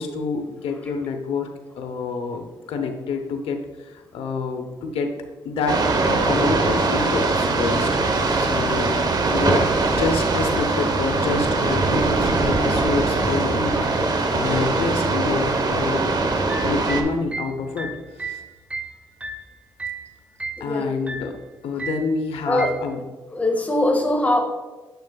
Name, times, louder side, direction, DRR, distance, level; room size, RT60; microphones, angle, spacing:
voice 1, 0.0-1.5 1.8-3.6 3.9-5.1 5.4-5.8 6.0-7.9 8.4-13.7 14.0-16.2 16.6-17.9 18.2-18.4 20.6-21.3 21.6-23.0, left 4 dB, 90° left, 5 dB, 0.8 m, -27 dB
sound 1, 5.7-17.0, right 3 dB, 45° right, 0.9 m, -21 dB
sound 2, 16.3-20.1 20.4-20.7 21.1-21.4 21.8-22.1 22.6-22.9, right 3 dB, 10° right, 0.7 m, -33 dB
voice 2, 20.6-20.9 22.4-22.7 23.3-24.4, left 1 dB, 15° left, 2 dB, 1.5 m, -21 dB
9.2 x 6.9 x 2.3 m, 1.2 s
cardioid pair, 80°, 9 cm